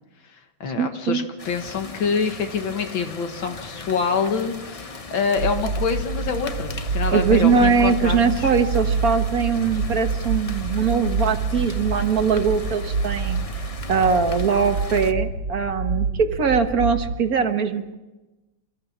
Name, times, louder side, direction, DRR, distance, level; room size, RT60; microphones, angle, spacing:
voice 1, 0.2-8.5, left 5 dB, 85° left, 6 dB, 2.3 m, -26 dB
voice 2, 0.8-1.3 7.1-13.4 13.9-17.9, right 5 dB, 50° right, 7 dB, 1.7 m, -21 dB
sound 1, 1.4-15.1, left 3 dB, 40° left, 0.5 m, -38 dB
sound 2, 5.4-17.2, right 4 dB, 75° right, 2.0 m, -27 dB
28.5 x 14.0 x 7.3 m, 1.1 s
omnidirectional pair, 2.1 m